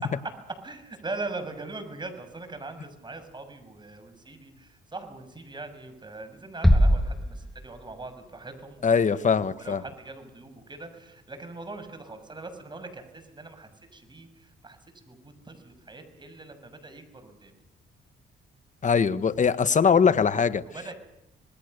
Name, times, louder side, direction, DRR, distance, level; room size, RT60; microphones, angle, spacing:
voice 1, 0.6-9.1 9.6-14.8 15.1-17.5 20.6-20.9, right 3 dB, 20° right, 7 dB, 6.7 m, -41 dB
sound 1, 6.6-8.3, equal, ahead, 2.0 m, -22 dB
voice 2, 8.8-9.8 18.8-20.6, left 6 dB, 40° left, 13 dB, 1.4 m, -22 dB
27.5 x 20.5 x 6.7 m, 0.87 s
cardioid pair, 90°, 20 cm